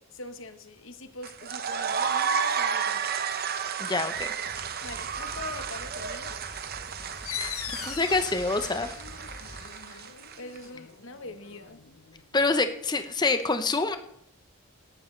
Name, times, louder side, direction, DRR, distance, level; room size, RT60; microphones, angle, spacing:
voice 1, 0.1-3.1 4.8-6.4 10.4-12.0, left 2 dB, 60° left, 8 dB, 1.1 m, -43 dB
sound 1, 1.2-10.6, right 6 dB, 45° right, 0.7 m, -32 dB
voice 2, 3.8-4.3 7.8-8.9 12.3-14.0, left 3 dB, 20° left, 9 dB, 0.7 m, -26 dB
sound 2, 4.1-9.7, equal, 5° right, 5.8 m, -47 dB
sound 3, 7.2-12.5, left 10 dB, 80° left, 0.9 m, -41 dB
17.5 x 12.0 x 3.3 m, 0.78 s
head